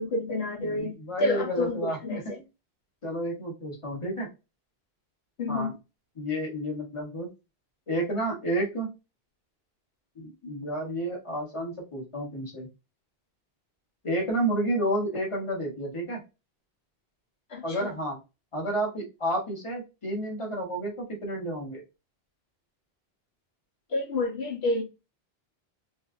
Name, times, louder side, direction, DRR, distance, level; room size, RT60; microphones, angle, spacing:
voice 1, 0.0-0.9 1.2-2.4 5.4-5.7 17.5-17.9 23.9-24.8, left 2 dB, 80° left, 1.2 m, -29 dB
voice 2, 0.6-2.2 3.0-4.3 5.5-5.7 6.2-7.3 7.9-8.9 10.2-12.7 14.0-16.2 17.6-18.2 18.5-21.8, right 1 dB, 30° left, 1.4 m, -31 dB
4.3 x 2.5 x 2.5 m
omnidirectional pair, 1.0 m